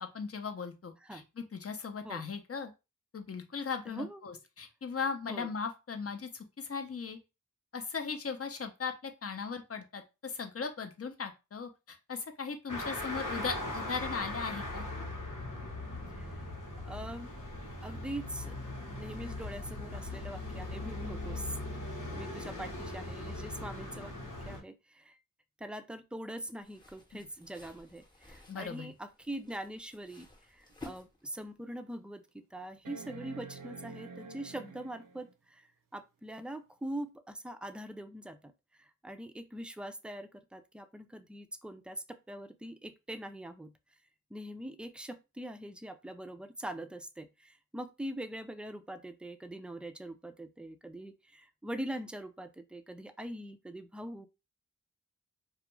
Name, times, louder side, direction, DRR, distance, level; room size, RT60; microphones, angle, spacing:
voice 1, 0.1-2.7 3.1-7.2 7.7-14.8 27.1-27.2 28.5-28.9, left 5 dB, 45° left, 6 dB, 0.6 m, -38 dB
voice 2, 3.9-4.2 5.3-5.5 16.1-16.5 16.8-17.3 17.8-18.5 19.0-21.6 22.1-24.1 24.5-25.2 25.6-35.7 35.9-38.5 38.8-43.7 44.3-54.3, right 1 dB, 5° right, 9 dB, 0.4 m, -43 dB
sound 1, 12.7-24.6, left 2 dB, 75° left, 1.0 m, -40 dB
sound 2, 26.6-31.6, left 3 dB, 15° left, 0.9 m, -54 dB
sound 3, 30.7-30.8 31.4-31.5 32.8-35.3 37.0-37.1, right 5 dB, 85° right, 0.5 m, -48 dB
2.4 x 2.2 x 3.0 m, 0.27 s
cardioid pair, 45°, 32 cm